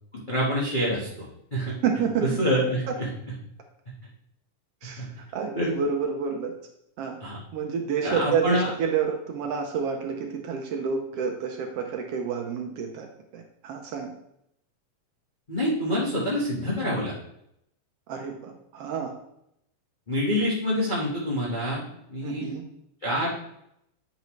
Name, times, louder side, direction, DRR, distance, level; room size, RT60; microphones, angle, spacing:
voice 1, 0.1-1.7 2.2-3.1 5.0-5.1 5.5-5.7 7.2-7.4 8.0-8.7 15.5-17.1 20.1-22.5 23.0-23.3, equal, 40° left, -7 dB, 0.7 m, -26 dB
voice 2, 1.8-2.4 2.9-3.0 4.8-5.0 5.3-6.5 7.0-7.2 7.5-13.1 13.3-14.1 18.1-19.1 22.2-22.6, right 6 dB, 70° right, 2 dB, 1.5 m, -29 dB
9.3 x 5.3 x 3.1 m, 0.77 s
omnidirectional pair, 3.4 m